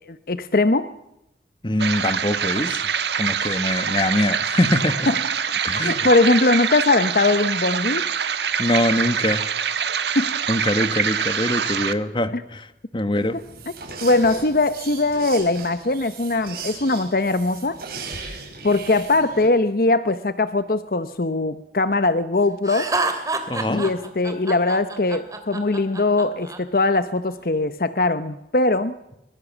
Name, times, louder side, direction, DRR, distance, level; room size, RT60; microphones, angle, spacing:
voice 1, 0.1-0.9 5.1-5.2 5.5-8.1 10.1-10.4 11.6-11.7 12.3-12.4 14.0-17.8 18.6-22.9 23.7-29.0, left 2 dB, 55° left, 12 dB, 0.8 m, -21 dB
voice 2, 1.6-2.8 3.2-5.1 5.6-6.1 8.6-9.4 10.5-12.7 12.9-13.4 23.5-23.8, left 1 dB, 25° left, 11 dB, 1.3 m, -23 dB
sound 1, 1.8-11.9, right 7 dB, 75° right, 1.4 m, -25 dB
sound 2, 13.1-19.5, right 5 dB, 55° right, 7.1 m, -37 dB
Laughter, 22.7-26.6, right 3 dB, 20° right, 2.7 m, -27 dB
24.0 x 22.0 x 7.3 m, 0.85 s
head